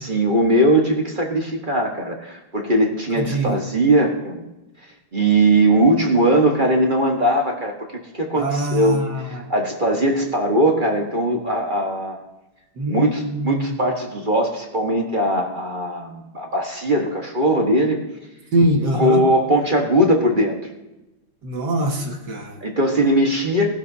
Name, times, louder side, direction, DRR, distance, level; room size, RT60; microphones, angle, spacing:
voice 1, 0.0-4.4 5.1-9.0 9.2-12.2 12.9-18.0 18.9-20.6 22.6-23.7, right 1 dB, 25° right, 1 dB, 1.3 m, -20 dB
voice 2, 3.1-3.6 8.4-9.5 12.8-13.7 18.5-19.2 21.4-22.6, right 1 dB, 55° right, 2 dB, 2.1 m, -23 dB
18.0 x 12.0 x 2.8 m, 0.98 s
omnidirectional pair, 2.3 m